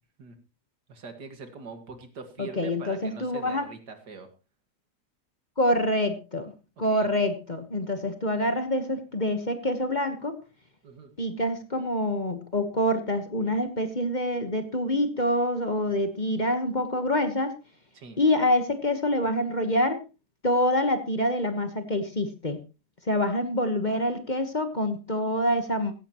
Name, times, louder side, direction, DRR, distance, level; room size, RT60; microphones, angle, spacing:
voice 1, 0.9-4.3 6.9-7.1 10.8-11.1 17.9-18.2, right 4 dB, 85° right, 7 dB, 2.6 m, -43 dB
voice 2, 2.4-3.7 5.6-6.5 6.8-10.3 11.2-17.5 18.2-20.0 20.4-22.6 23.1-25.9, left 1 dB, 30° left, 8 dB, 1.3 m, -26 dB
16.0 x 14.5 x 3.0 m, 0.30 s
omnidirectional pair, 1.8 m